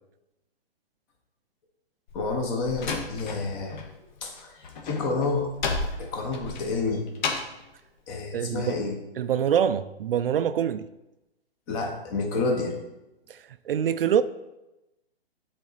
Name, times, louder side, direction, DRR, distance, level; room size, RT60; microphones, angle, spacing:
Slam, 2.1-3.9 4.2-7.6, left 4 dB, 45° left, 1.2 m, -32 dB
voice 1, 2.1-3.8 4.2-5.5 6.0-7.0 8.1-9.0 11.7-12.8, left 3 dB, 20° left, 0.8 m, -29 dB
voice 2, 8.3-8.7 9.2-10.9 13.3-14.2, right 9 dB, 65° right, 0.4 m, -25 dB
9.2 x 4.1 x 4.0 m
hypercardioid pair, 150°, 31 cm